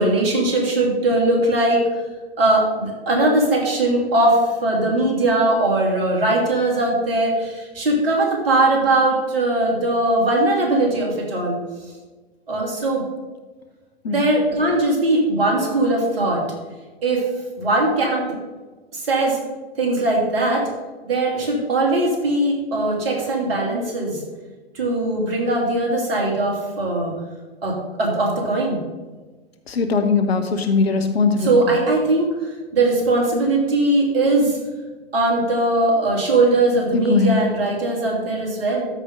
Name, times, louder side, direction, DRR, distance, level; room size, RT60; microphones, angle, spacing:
voice 1, 0.0-1.8 2.4-11.6 12.5-13.0 14.1-16.4 17.0-17.3 17.6-18.2 18.9-19.4 19.8-20.7 21.1-24.2 24.7-27.1 27.6-28.8 31.4-34.6 35.1-38.8, right 2 dB, 65° right, -1 dB, 3.0 m, -20 dB
voice 2, 29.7-31.8 36.9-37.3, left 4 dB, 75° left, 6 dB, 1.3 m, -20 dB
13.0 x 5.4 x 3.8 m, 1.3 s
figure-of-eight pair, 100°, 31 cm